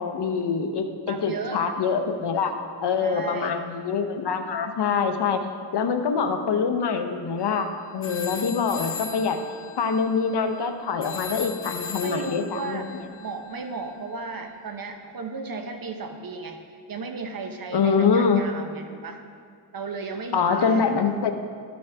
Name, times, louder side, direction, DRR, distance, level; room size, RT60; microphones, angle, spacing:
voice 1, 0.0-2.5 2.8-5.4 5.7-7.7 7.9-9.4 9.8-12.8 17.7-18.4 20.3-21.3, left 5 dB, 65° left, 7 dB, 0.8 m, -24 dB
voice 2, 1.1-1.6 3.0-3.6 12.0-16.6 16.9-19.2 19.7-20.9, right 4 dB, 50° right, 5 dB, 0.9 m, -35 dB
sound 1, 7.4-7.6 8.0-14.7, left 6 dB, 30° left, 0.7 m, -39 dB
12.5 x 6.2 x 3.5 m, 2.1 s
cardioid pair, 75°, 43 cm